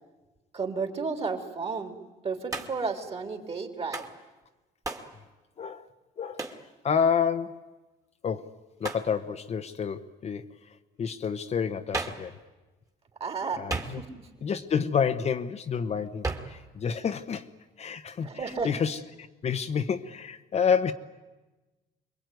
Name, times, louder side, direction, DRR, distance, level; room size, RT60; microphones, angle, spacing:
voice 1, 0.5-2.0 2.2-4.1 13.2-14.1 18.2-18.7, right 4 dB, 35° right, 4 dB, 3.4 m, -32 dB
Hands, 2.5-2.9 3.9-4.2 4.8-5.1 6.4-6.6 8.8-9.1 11.9-12.3 13.7-14.3 16.2-16.6, right 3 dB, 20° right, 2.3 m, -34 dB
voice 2, 6.2-6.5 6.8-7.7 8.2-10.5 11.0-12.3 13.6-14.0 14.4-17.5 17.8-19.0 19.4-20.9, left 7 dB, 40° left, 7 dB, 1.1 m, -29 dB
26.0 x 22.0 x 9.4 m, 1.2 s
cardioid pair, 110°, 17 cm